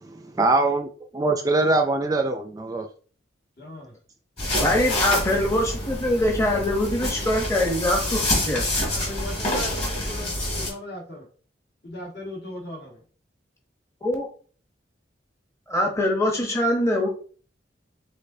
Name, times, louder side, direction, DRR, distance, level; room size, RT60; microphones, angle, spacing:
voice 1, 0.0-2.9, right 2 dB, 20° right, 5 dB, 0.3 m, -23 dB
voice 2, 3.6-4.0 8.9-11.3 11.8-13.0, left 1 dB, 55° left, -1 dB, 1.5 m, -38 dB
sound 1, 4.4-10.7, left 1 dB, 35° left, 2.3 m, -27 dB
voice 3, 4.6-8.7 14.0-14.3 15.7-17.1, left 1 dB, 15° left, 0 dB, 0.8 m, -23 dB
5.2 x 3.8 x 2.7 m, 0.41 s
head